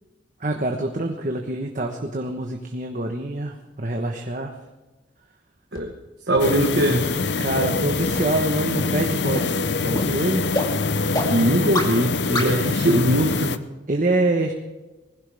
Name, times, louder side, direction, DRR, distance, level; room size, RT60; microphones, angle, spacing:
voice 1, 0.4-4.5 7.4-10.5 11.0-11.1 13.9-14.5, right 2 dB, 45° right, 2 dB, 1.2 m, -26 dB
sound 1, 5.7-5.8 6.3-6.4 6.9-7.0 7.5-7.6 8.1-8.2 8.7-8.8 9.3-9.4 9.9-10.0 10.5-10.6 11.1-11.2 11.7-11.8 12.3-12.4, left 1 dB, 20° left, 2.3 m, -26 dB
voice 2, 6.3-7.1 11.3-13.6, right 1 dB, 60° right, 1 dB, 1.4 m, -21 dB
sound 2, 6.4-13.6, left 4 dB, 65° left, 0.7 m, -24 dB
20.0 x 16.5 x 3.5 m, 1.1 s
head